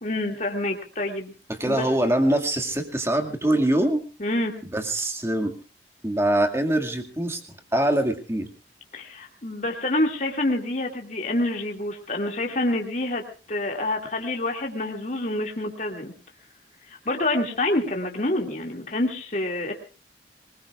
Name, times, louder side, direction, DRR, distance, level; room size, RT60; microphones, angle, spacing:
voice 1, 0.0-1.3 1.7-1.9 4.2-4.5 8.9-13.2 13.5-16.1 16.9-19.7, left 1 dB, 45° left, 1 dB, 2.4 m, -27 dB
voice 2, 1.5-4.0 4.6-5.5 6.0-7.4 7.7-8.5, right 1 dB, 15° right, 5 dB, 2.2 m, -23 dB
25.5 x 20.5 x 2.5 m, 0.35 s
head